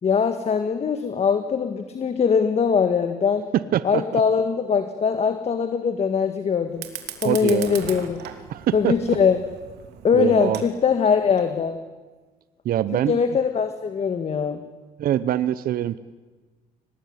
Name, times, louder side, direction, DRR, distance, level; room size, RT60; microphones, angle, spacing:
voice 1, 0.0-3.4 3.8-6.9 7.2-8.3 8.7-9.4 10.0-11.8 13.1-14.6, left 6 dB, 40° left, 8 dB, 1.6 m, -22 dB
voice 2, 3.7-4.0 7.2-7.7 8.5-8.9 10.1-10.6 12.6-13.2 15.0-16.0, right 11 dB, 60° right, 14 dB, 0.9 m, -23 dB
Fire, 6.7-11.7, right 10 dB, 80° right, 2.9 m, -39 dB
24.0 x 19.0 x 9.7 m, 1.3 s
cardioid pair, 110°, 17 cm